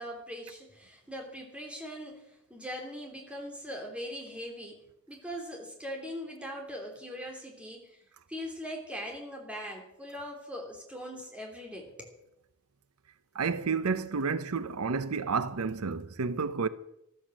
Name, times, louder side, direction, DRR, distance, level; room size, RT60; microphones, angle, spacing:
voice 1, 0.0-4.8 5.1-8.0 8.3-12.1, equal, 5° right, 3.2 m, -41 dB
voice 2, 13.3-16.7, right 5 dB, 90° right, 0.7 m, -30 dB
14.0 x 13.0 x 6.3 m
head